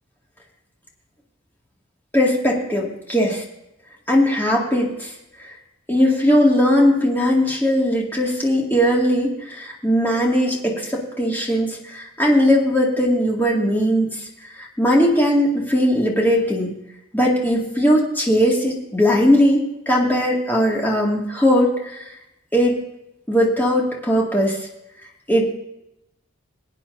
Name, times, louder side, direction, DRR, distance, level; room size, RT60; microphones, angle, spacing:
voice 1, 2.1-3.4 4.1-5.1 5.9-14.1 14.6-16.7 17.1-22.1 22.5-22.8 23.3-24.6 25.3-25.5, equal, 10° left, -3 dB, 2.2 m, -19 dB
22.0 x 9.1 x 2.7 m, 0.89 s
head